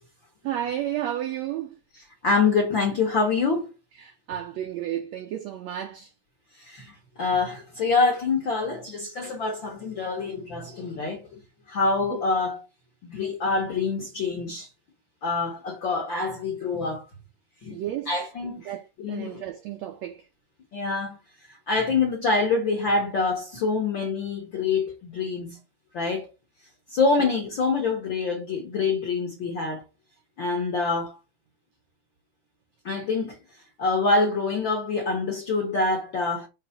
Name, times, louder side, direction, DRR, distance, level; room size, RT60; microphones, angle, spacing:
voice 1, 0.4-1.8 4.0-6.1 12.1-12.2 17.7-18.1 18.7-20.2, right 11 dB, 85° right, 1.5 m, -32 dB
voice 2, 1.9-3.7 6.6-11.4 11.7-12.7 13.0-14.7 15.2-17.0 17.6-17.8 18.1-19.4 20.7-21.2 21.5-25.6 25.9-26.3 26.9-29.8 30.4-31.2 32.8-33.4 33.8-36.5, left 4 dB, 60° left, 1.2 m, -26 dB
6.0 x 3.2 x 5.8 m
omnidirectional pair, 3.9 m